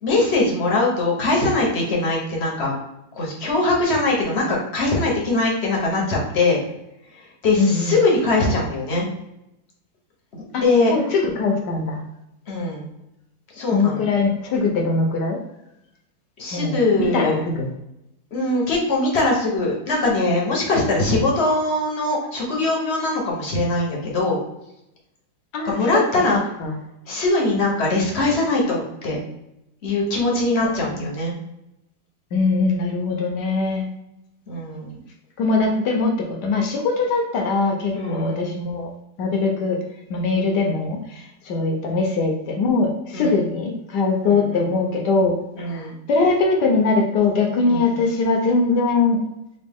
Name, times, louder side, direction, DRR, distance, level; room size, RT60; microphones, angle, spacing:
voice 1, 0.0-2.7 3.2-6.6 7.4-9.1 10.6-10.9 12.5-12.9 13.5-14.1 16.4-17.4 18.3-24.4 25.6-26.4 27.1-29.2 29.8-31.3 34.5-35.0 38.0-38.4 43.1-43.3 44.2-44.7 45.6-45.9 47.7-47.9, left 2 dB, 45° left, -2 dB, 0.9 m, -21 dB
voice 2, 7.6-8.0 10.5-12.0 13.7-15.4 16.5-17.7 25.5-26.0 26.3-26.7 27.5-27.6 30.6-31.1 32.3-33.9 35.4-38.9 39.2-39.8 40.1-45.4 45.6-49.2, left 3 dB, 65° left, 1 dB, 1.2 m, -22 dB
4.1 x 2.4 x 3.5 m, 0.87 s
omnidirectional pair, 2.1 m